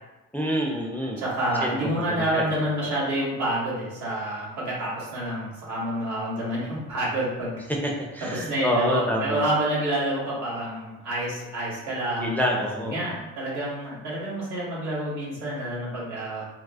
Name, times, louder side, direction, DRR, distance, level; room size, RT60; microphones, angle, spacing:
voice 1, 0.3-1.2 1.6-1.8 2.1-2.5 7.8-9.4 12.2-13.0, equal, 5° left, -1 dB, 0.4 m, -27 dB
voice 2, 1.2-7.6 8.2-12.4 12.8-16.5, right 1 dB, 75° right, -7 dB, 1.5 m, -28 dB
4.7 x 2.0 x 2.4 m, 1.1 s
cardioid pair, 90°, 30 cm